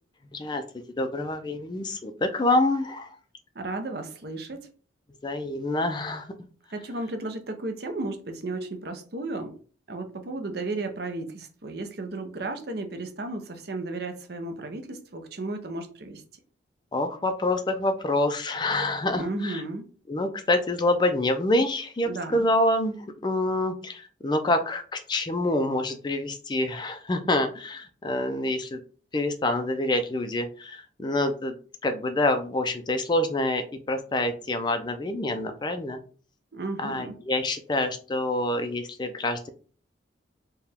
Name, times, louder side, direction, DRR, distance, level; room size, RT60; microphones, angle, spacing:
voice 1, 0.3-3.1 5.2-6.3 16.9-19.6 20.1-23.0 23.2-28.8 29.1-31.6 31.8-36.0 36.8-39.5, left 2 dB, 25° left, 8 dB, 0.4 m, -26 dB
voice 2, 3.6-4.7 6.7-9.5 9.9-16.2 19.1-19.9 22.1-22.5 36.5-37.2, right 2 dB, 55° right, 6 dB, 0.6 m, -34 dB
4.5 x 2.2 x 3.4 m, 0.40 s
head